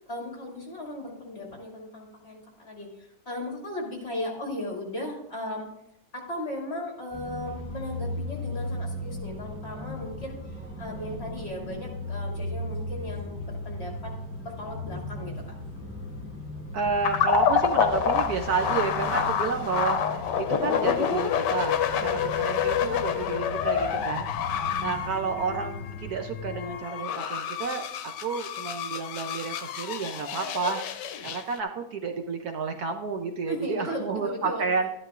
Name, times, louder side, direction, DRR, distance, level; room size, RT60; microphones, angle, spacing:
voice 1, 0.0-5.7 6.1-10.4 10.8-14.1 14.4-15.3 18.7-18.8 19.1-19.6 21.9-23.2 30.3-30.6 33.5-34.6, left 1 dB, 35° left, -1 dB, 2.6 m, -37 dB
sound 1, 7.1-26.7, left 2 dB, 5° left, 3.9 m, -37 dB
voice 2, 16.7-24.3 24.8-34.9, right 5 dB, 65° right, 5 dB, 1.1 m, -31 dB
sound 2, 17.0-31.6, left 7 dB, 80° left, 1.3 m, -28 dB
12.5 x 11.0 x 2.5 m, 0.81 s
omnidirectional pair, 1.9 m